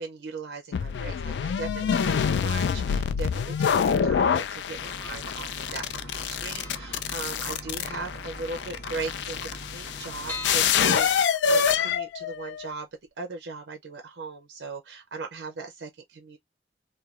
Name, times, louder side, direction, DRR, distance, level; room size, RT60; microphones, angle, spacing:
voice 1, 0.0-9.4 9.7-12.9 13.2-16.4, right 4 dB, 90° right, 0.6 m, -38 dB
sound 1, 0.7-12.7, left 7 dB, 85° left, 0.3 m, -26 dB
sound 2, 4.7-10.7, equal, 70° left, 1.2 m, -42 dB
sound 3, 6.5-7.9 8.2-8.3 8.6-8.7 8.9-9.0 9.5-12.1 12.6-12.7 13.0-13.1, left 3 dB, 10° left, 0.7 m, -43 dB
3.2 x 2.2 x 2.3 m
head